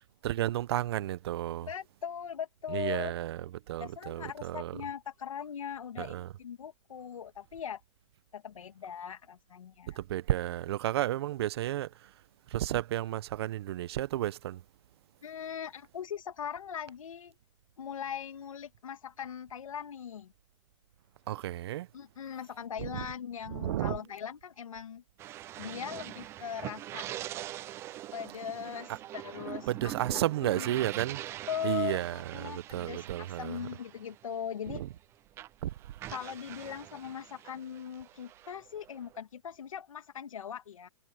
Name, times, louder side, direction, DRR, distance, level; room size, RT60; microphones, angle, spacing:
voice 1, 0.2-1.7 2.7-4.7 6.0-6.3 10.0-12.1 12.5-14.6 21.3-21.9 22.8-23.1 23.5-24.0 29.7-31.2 31.6-33.6 34.7-34.9 35.6-35.7, right 13 dB, 50° right, 0.8 m, -32 dB
voice 2, 1.6-3.1 3.8-7.8 8.3-10.0 15.2-17.4 17.8-20.3 21.9-25.0 25.6-27.1 28.1-30.7 31.5-34.8 36.1-40.9, left 8 dB, 85° left, 2.3 m, -40 dB
sound 1, 25.2-35.0 35.3-39.2, right 13 dB, 15° right, 0.4 m, -44 dB
hypercardioid pair, 150°, 17 cm